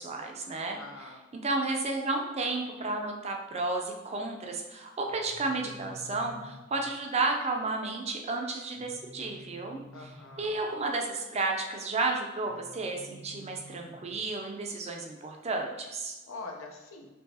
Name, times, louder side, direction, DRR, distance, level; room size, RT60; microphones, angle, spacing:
voice 1, 0.0-0.8 1.3-9.8 10.4-16.2, right 3 dB, 30° right, 2 dB, 0.5 m, -32 dB
voice 2, 0.8-1.2 9.9-10.6 16.3-17.1, left 3 dB, 80° left, 2 dB, 0.6 m, -44 dB
sound 1, 5.1-7.0 8.7-10.7 12.5-14.4, left 1 dB, 35° left, 0.7 m, -51 dB
4.6 x 3.0 x 2.7 m, 1.1 s
head